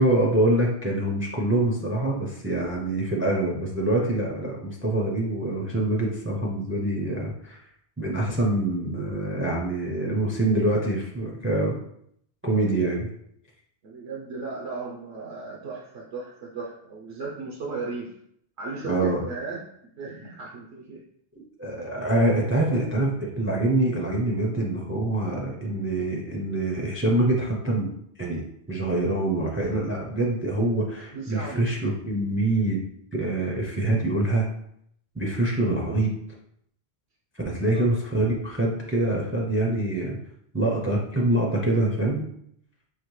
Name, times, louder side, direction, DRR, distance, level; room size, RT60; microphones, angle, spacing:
voice 1, 0.0-7.6 8.0-11.8 12.4-13.1 18.8-19.2 21.6-27.9 28.2-28.4 28.7-32.8 33.1-34.5 35.2-36.1 37.4-40.2 40.5-42.3, right 1 dB, 15° right, -1 dB, 0.5 m, -25 dB
voice 2, 13.8-18.1 18.6-19.6 20.0-21.0 21.8-21.9 22.7-22.8 31.1-31.6 37.5-37.9, right 4 dB, 75° right, -2 dB, 1.0 m, -36 dB
5.6 x 2.8 x 3.2 m, 0.71 s
omnidirectional pair, 1.1 m